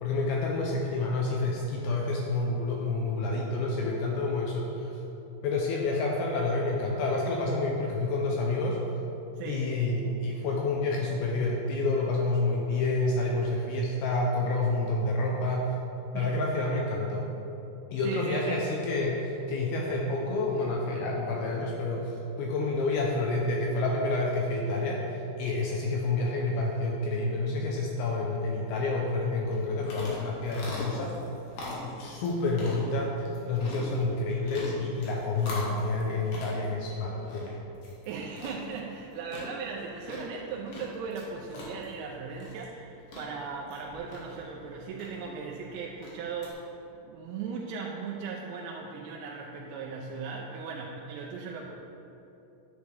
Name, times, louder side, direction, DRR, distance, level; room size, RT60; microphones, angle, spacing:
voice 1, 0.0-4.9 5.4-8.8 9.5-15.7 16.1-17.3 17.9-25.0 25.4-31.1 32.0-37.5, left 2 dB, 80° left, -1 dB, 2.4 m, -29 dB
voice 2, 9.4-9.8 16.1-16.4 18.0-18.6 38.1-46.7 46.9-51.7, right 5 dB, 85° right, -2 dB, 2.9 m, -38 dB
sound 1, 29.4-46.5, left 1 dB, 60° left, 2.5 m, -43 dB
10.5 x 8.2 x 3.4 m, 3.0 s
omnidirectional pair, 5.0 m